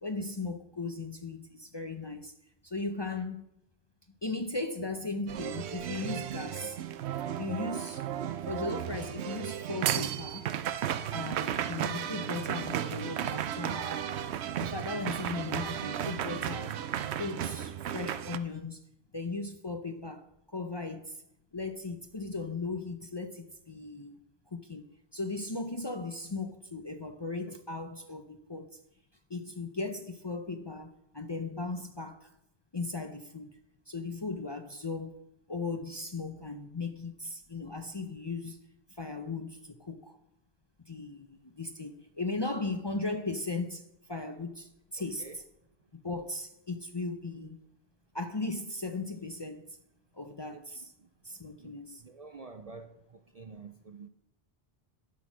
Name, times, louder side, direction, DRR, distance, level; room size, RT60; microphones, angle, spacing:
voice 1, 0.0-2.3 2.6-3.4 4.2-6.8 7.4-8.0 8.5-10.5 11.1-14.2 14.6-16.8 17.2-18.8 19.1-21.2 21.5-24.2 24.5-28.8 29.3-32.3 32.7-33.5 33.9-35.2 35.5-38.6 38.9-40.2 40.9-45.4 45.9-47.6 48.1-49.8 50.1-50.9 51.2-52.0, left 3 dB, 30° left, 0.6 m, -37 dB
sound 1, 5.3-18.4, right 10 dB, 80° right, 0.9 m, -34 dB
voice 2, 52.0-54.1, right 4 dB, 45° right, 0.5 m, -48 dB
11.0 x 6.3 x 6.2 m
omnidirectional pair, 1.1 m